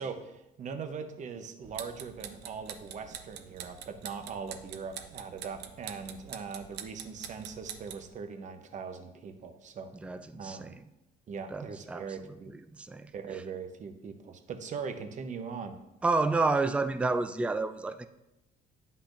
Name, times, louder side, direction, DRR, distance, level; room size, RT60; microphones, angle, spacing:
voice 1, 0.0-9.9 10.3-10.8 11.3-12.5 13.1-15.8, right 5 dB, 45° right, 7 dB, 0.8 m, -40 dB
sound 1, 1.6-8.1, right 9 dB, 80° right, 0.7 m, -45 dB
voice 2, 10.0-10.8 11.5-12.1 12.5-13.4 16.0-18.1, right 3 dB, 5° right, 9 dB, 0.3 m, -30 dB
9.9 x 5.6 x 2.6 m, 0.90 s
cardioid pair, 110°, 17 cm